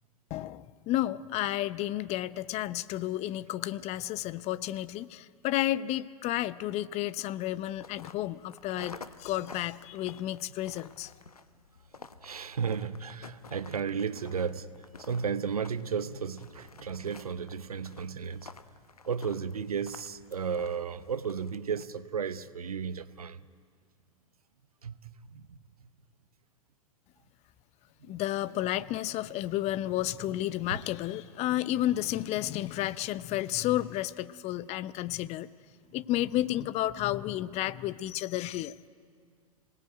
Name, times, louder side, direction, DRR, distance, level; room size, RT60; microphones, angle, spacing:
voice 1, 0.3-11.1 28.0-35.5 35.9-38.7, left 14 dB, 35° left, 0.7 m, -32 dB
sound 1, 7.5-21.9, left 4 dB, 85° left, 1.0 m, -51 dB
voice 2, 12.2-14.7 15.0-18.5 19.1-23.4 24.8-25.9 28.0-28.1 30.7-30.8, right 6 dB, 80° right, 0.9 m, -34 dB
26.0 x 18.0 x 9.1 m
figure-of-eight pair, 95°, 19 cm